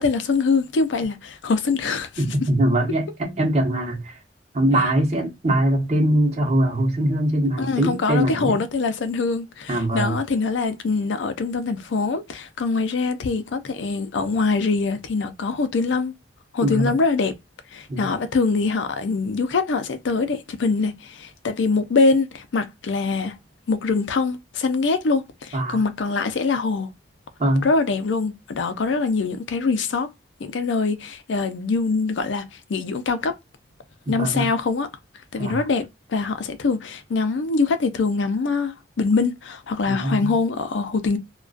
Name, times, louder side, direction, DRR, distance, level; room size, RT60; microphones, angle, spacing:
voice 1, 0.0-2.1 7.6-16.1 16.5-17.3 17.7-23.4 23.7-26.9 27.6-30.1 30.4-32.4 32.7-33.3 34.1-34.9 35.3-41.2, left 4 dB, 80° left, 0.4 m, -23 dB
voice 2, 2.2-4.2 4.5-8.6 9.7-10.2 16.6-17.0 17.9-18.1 25.5-25.8 27.4-27.7 34.1-34.5 35.4-35.6 39.9-40.3, right 1 dB, 35° right, 0.7 m, -22 dB
2.3 x 2.2 x 2.4 m
head